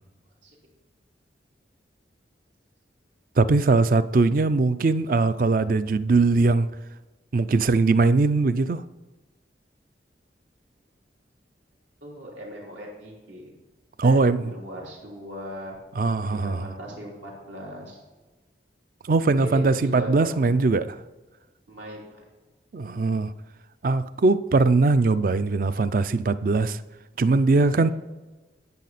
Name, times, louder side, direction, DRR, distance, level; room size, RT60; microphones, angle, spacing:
voice 1, 3.4-6.7 7.3-8.8 14.0-14.5 16.0-16.7 19.1-21.0 22.7-23.3 23.8-26.8 27.2-27.9, right 3 dB, 50° right, 0.4 m, -21 dB
voice 2, 12.0-13.5 14.0-15.8 16.3-18.0 19.3-20.3 21.7-22.2 27.7-27.8, equal, 80° right, 3.5 m, -38 dB
10.5 x 8.3 x 4.1 m
head